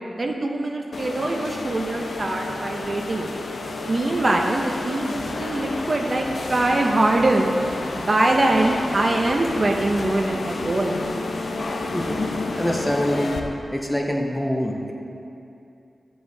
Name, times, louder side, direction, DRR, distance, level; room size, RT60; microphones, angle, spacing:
voice 1, 0.2-3.3 3.9-7.5 8.0-11.0, right 2 dB, 40° right, 2 dB, 0.6 m, -23 dB
sound 1, 0.9-13.4, left 2 dB, 65° left, 0.6 m, -30 dB
voice 2, 12.6-13.4 13.7-14.9, equal, 5° left, 0 dB, 0.7 m, -24 dB
10.5 x 7.7 x 2.7 m, 2.7 s
wide cardioid pair, 130°, 0 cm